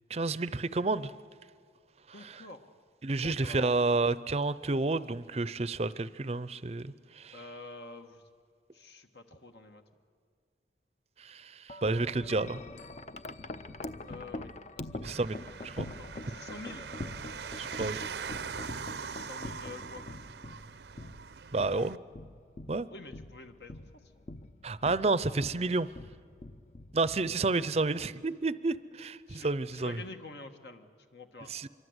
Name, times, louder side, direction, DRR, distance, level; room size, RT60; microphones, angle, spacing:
voice 1, 0.1-1.1 2.2-2.4 3.0-7.4 11.2-12.6 15.0-15.4 15.6-15.9 17.6-18.0 21.5-22.0 22.7-22.9 24.6-25.9 26.9-30.0 31.5-31.7, right 3 dB, 35° right, 16 dB, 0.6 m, -30 dB
voice 2, 2.1-2.7 3.2-3.8 7.3-8.2 8.7-9.8 14.0-14.5 14.8-15.0 15.8-16.9 19.0-20.0 21.6-21.8 22.9-24.0 29.3-31.5, left 3 dB, 70° left, 5 dB, 1.5 m, -47 dB
Wind chime, 11.7-27.9, left 2 dB, 40° left, 0.6 m, -44 dB
sound 1, 15.0-22.0, right 6 dB, 75° right, 0.6 m, -42 dB
25.5 x 23.5 x 8.0 m, 2.2 s
head